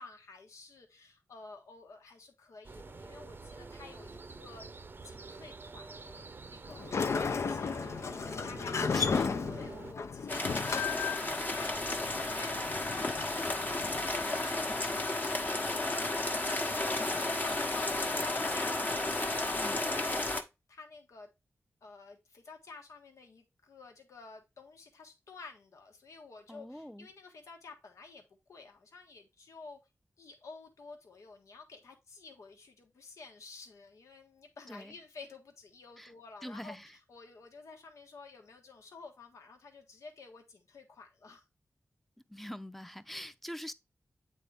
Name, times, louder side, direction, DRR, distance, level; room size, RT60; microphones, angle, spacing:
voice 1, 0.0-4.7 5.0-6.9 7.3-9.0 9.5-17.0 17.3-21.3 21.8-29.8 30.2-41.4, left 4 dB, 85° left, 1.5 m, -52 dB
sound 1, 2.6-9.9, right 3 dB, 40° right, 0.6 m, -47 dB
Sliding door, 6.7-14.3, left 5 dB, 65° left, 0.6 m, -35 dB
voice 2, 8.7-9.3 19.6-19.8 26.5-27.1 34.7-35.0 36.0-36.1 36.4-37.0 42.3-43.7, equal, 5° left, 0.6 m, -43 dB
sound 2, 10.3-20.4, left 2 dB, 35° left, 1.2 m, -33 dB
8.4 x 4.1 x 3.4 m
cardioid pair, 65°, 5 cm